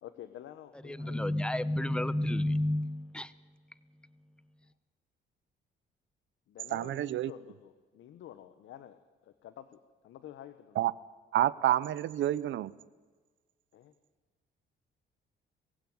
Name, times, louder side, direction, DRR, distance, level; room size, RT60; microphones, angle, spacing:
voice 1, 0.0-1.3 6.5-9.0 9.2-9.8 10.0-10.8 13.7-13.9, left 11 dB, 80° left, 1.2 m, -49 dB
voice 2, 0.8-3.3, left 1 dB, 5° left, 0.9 m, -30 dB
voice 3, 6.7-7.3 10.8-10.9 11.3-12.7, right 13 dB, 75° right, 0.8 m, -28 dB
21.5 x 15.5 x 9.6 m
cardioid pair, 90°, 20 cm